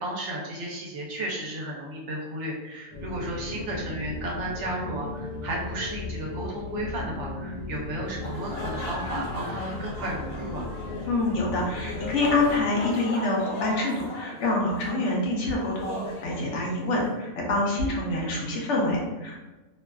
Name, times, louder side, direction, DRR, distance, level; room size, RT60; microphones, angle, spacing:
voice 1, 0.0-10.7 17.8-17.9, right 1 dB, 65° right, -2 dB, 0.9 m, -34 dB
sound 1, 2.9-12.6, left 3 dB, 85° left, 1.0 m, -36 dB
sound 2, 8.0-17.1, left 1 dB, 50° left, 1.0 m, -38 dB
voice 2, 11.1-19.4, left 2 dB, 70° left, -3 dB, 0.9 m, -26 dB
2.6 x 2.3 x 2.2 m, 1.1 s
omnidirectional pair, 1.4 m